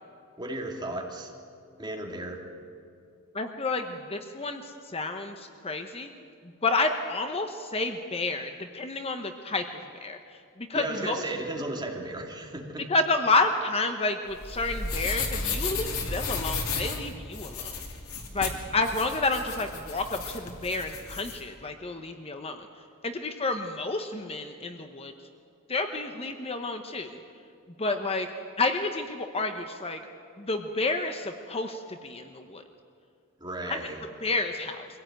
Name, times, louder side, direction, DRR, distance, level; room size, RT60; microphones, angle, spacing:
voice 1, 0.4-1.3 1.8-2.4 10.7-12.9 33.4-34.0, right 1 dB, 20° right, 1 dB, 2.6 m, -35 dB
voice 2, 3.3-6.1 6.6-9.6 10.0-10.2 10.6-11.2 12.9-17.7 18.3-22.7 23.0-25.1 25.7-27.2 27.8-28.3 28.6-30.0 30.4-32.6 33.7-33.9 34.2-34.9, left 3 dB, 30° left, 6 dB, 1.0 m, -30 dB
sound 1, 14.3-21.4, left 4 dB, 85° left, 2.9 m, -34 dB
23.5 x 17.0 x 9.1 m, 2.4 s
head